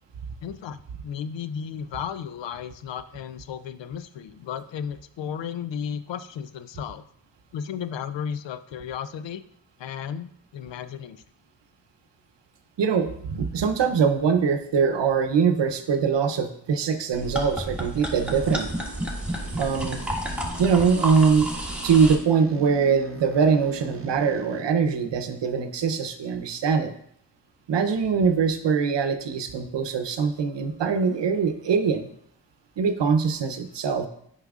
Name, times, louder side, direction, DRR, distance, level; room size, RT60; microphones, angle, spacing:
voice 1, 0.4-7.0 7.5-9.4 9.8-11.2 20.4-20.5, left 8 dB, 85° left, 13 dB, 0.5 m, -34 dB
voice 2, 12.8-18.7 19.6-20.0 20.6-21.5 21.8-26.9 27.7-32.1 32.8-34.1, right 6 dB, 75° right, 8 dB, 0.8 m, -22 dB
sound 1, 17.1-22.2, right 1 dB, 5° right, 1.6 m, -31 dB
sound 2, 18.2-24.6, right 2 dB, 30° right, 0.8 m, -42 dB
7.8 x 5.8 x 2.4 m, 0.68 s
cardioid pair, 45°, 43 cm